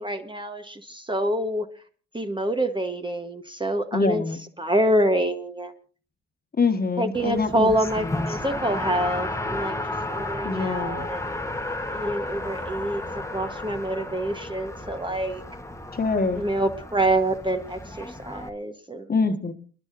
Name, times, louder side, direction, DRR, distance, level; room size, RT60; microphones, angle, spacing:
voice 1, 0.0-1.7 2.1-4.2 4.6-5.7 7.0-9.8 10.1-11.3 11.9-15.4 16.3-19.0, right 1 dB, 15° right, 6 dB, 1.1 m, -26 dB
voice 2, 3.9-4.4 6.6-7.7 8.0-8.2 10.4-11.1 15.9-16.4 19.1-19.5, left 4 dB, 30° left, 6 dB, 1.5 m, -25 dB
Race car auto racing, 7.1-18.5, left 2 dB, 10° left, 1.1 m, -33 dB
29.5 x 10.5 x 2.6 m, 0.39 s
cardioid pair, 90°, 30 cm